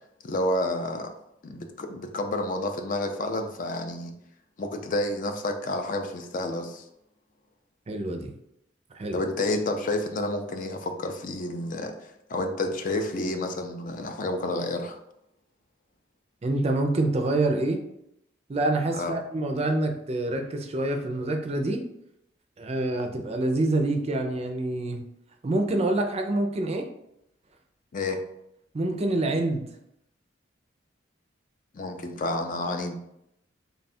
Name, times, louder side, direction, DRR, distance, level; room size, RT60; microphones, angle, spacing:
voice 1, 0.2-1.1 1.4-4.1 4.6-6.8 9.1-15.0 18.9-19.2 27.9-28.2 31.7-33.0, left 2 dB, 45° left, 6 dB, 0.4 m, -30 dB
voice 2, 7.9-8.3 8.9-9.2 16.4-17.8 18.5-21.8 22.6-25.0 25.4-26.9 28.7-29.7, right 2 dB, 35° right, 4 dB, 0.4 m, -26 dB
3.4 x 2.3 x 4.1 m, 0.78 s
head